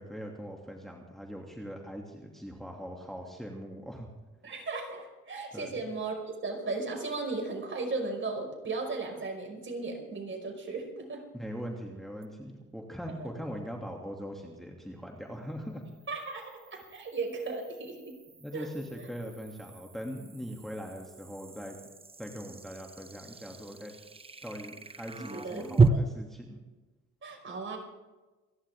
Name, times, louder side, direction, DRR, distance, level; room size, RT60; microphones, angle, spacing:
voice 1, 0.0-4.1 5.5-5.7 11.3-15.8 18.4-21.8 22.2-23.9 24.4-26.6, equal, ahead, 0 dB, 2.5 m, -41 dB
voice 2, 4.4-11.2 13.1-13.3 16.1-18.2 18.5-18.7 25.2-26.0 27.2-27.8, right 3 dB, 40° right, 2 dB, 5.3 m, -36 dB
sound 1, 12.2-12.3 15.7-25.9, right 5 dB, 20° right, 0.9 m, -34 dB
28.5 x 11.0 x 3.6 m, 1.2 s
cardioid pair, 90°, 30 cm